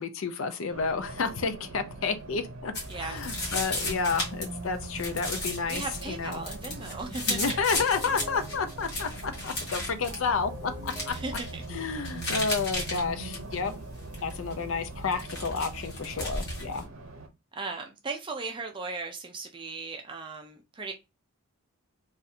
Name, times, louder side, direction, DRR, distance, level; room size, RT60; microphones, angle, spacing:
voice 1, 0.0-6.4 7.3-11.1 11.7-13.7 14.2-16.8, left 5 dB, 65° left, 0.5 m, -31 dB
Race car auto racing, 0.7-17.3, right 2 dB, 65° right, 0.7 m, -43 dB
sound 1, 2.7-16.8, left 1 dB, 50° left, 1.3 m, -36 dB
voice 2, 2.9-3.2 5.7-7.6 11.1-11.6 17.5-20.9, right 3 dB, 20° right, 0.4 m, -37 dB
sound 2, 7.4-12.5, left 1 dB, ahead, 1.1 m, -48 dB
2.6 x 2.5 x 4.1 m
head